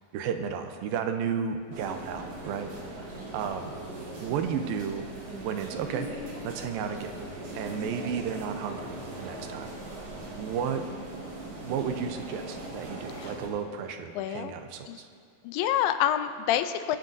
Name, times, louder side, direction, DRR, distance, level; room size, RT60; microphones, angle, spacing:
voice 1, 0.1-2.7 3.3-3.7 4.2-5.1 5.4-6.1 6.4-7.1 7.6-9.7 10.4-10.9 11.6-15.1, right 7 dB, 90° right, 6 dB, 2.6 m, -33 dB
sound 1, 1.7-13.5, right 1 dB, 50° right, 3.1 m, -40 dB
voice 2, 14.2-14.5 14.9-15.0 15.4-17.0, left 11 dB, 85° left, 10 dB, 2.3 m, -27 dB
25.5 x 10.0 x 2.7 m, 2.1 s
omnidirectional pair, 4.1 m